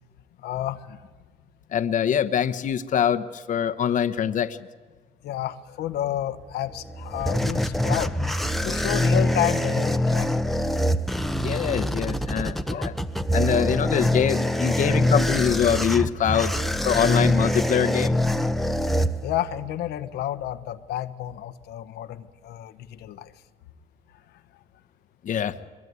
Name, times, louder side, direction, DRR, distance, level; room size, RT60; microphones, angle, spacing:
voice 1, 0.4-1.0 5.2-8.2 8.6-10.5 12.7-13.0 13.5-13.7 14.7-15.1 19.2-23.3 24.5-24.6, left 12 dB, 75° left, 9 dB, 1.1 m, -31 dB
voice 2, 1.7-4.6 11.4-12.9 13.3-16.6 16.8-18.2 25.2-25.5, left 8 dB, 50° left, 9 dB, 1.0 m, -24 dB
sound 1, 6.7-19.6, left 1 dB, ahead, 1.0 m, -24 dB
23.0 x 22.0 x 9.6 m, 1.4 s
cardioid pair, 110°, 17 cm